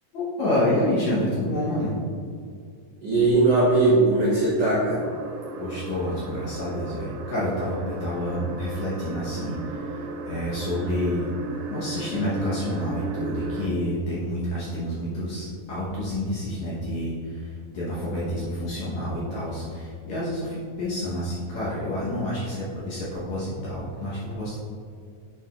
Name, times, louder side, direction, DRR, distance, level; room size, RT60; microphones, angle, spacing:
voice 1, 0.1-2.0 5.6-11.3 11.7-24.6, left 1 dB, 65° left, -8 dB, 1.9 m, -28 dB
voice 2, 3.0-5.0, right 2 dB, 70° right, -9 dB, 1.5 m, -19 dB
sound 1, 5.0-13.7, right 3 dB, 85° right, 2.5 m, -36 dB
9.2 x 4.8 x 2.4 m, 2.3 s
omnidirectional pair, 4.4 m